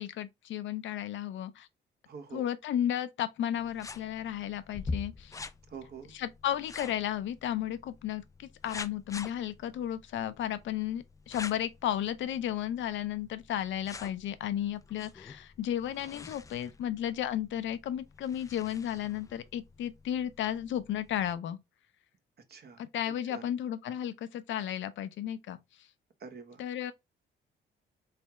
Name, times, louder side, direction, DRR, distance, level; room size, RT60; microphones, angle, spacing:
voice 1, 0.0-1.7 2.3-5.4 6.1-21.6 22.8-25.6 26.6-26.9, left 11 dB, 70° left, 0.6 m, -34 dB
voice 2, 2.1-2.5 5.7-6.2 22.5-23.4 26.2-26.6, right 5 dB, 55° right, 1.0 m, -46 dB
sound 1, 3.6-21.3, left 3 dB, 15° left, 0.3 m, -46 dB
3.5 x 3.3 x 2.9 m
cardioid pair, 90°, 20 cm